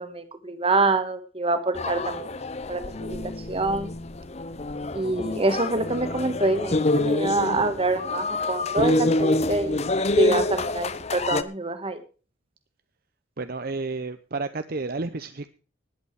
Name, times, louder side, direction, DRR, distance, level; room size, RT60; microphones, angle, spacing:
voice 1, 0.0-2.4 2.7-3.9 4.9-9.8 10.2-12.0, right 2 dB, 30° right, 9 dB, 1.6 m, -26 dB
sound 1, 1.8-11.4, left 2 dB, 35° left, 0.7 m, -27 dB
voice 2, 13.4-15.5, right 3 dB, 50° right, 10 dB, 0.7 m, -31 dB
19.5 x 8.2 x 4.8 m, 0.38 s
head